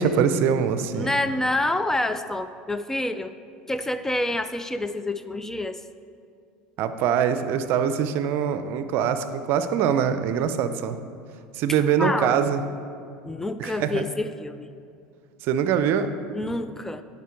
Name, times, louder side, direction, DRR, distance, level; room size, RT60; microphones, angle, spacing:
voice 1, 0.0-1.1 6.8-11.0 11.5-12.6 13.6-14.0 15.4-16.1, right 7 dB, 60° right, 11 dB, 0.5 m, -23 dB
voice 2, 0.9-3.3 3.7-5.8 12.0-12.4 13.2-14.7 16.3-17.0, left 1 dB, 10° left, 10 dB, 0.4 m, -27 dB
11.0 x 5.2 x 4.5 m, 2.4 s
hypercardioid pair, 90°, 4 cm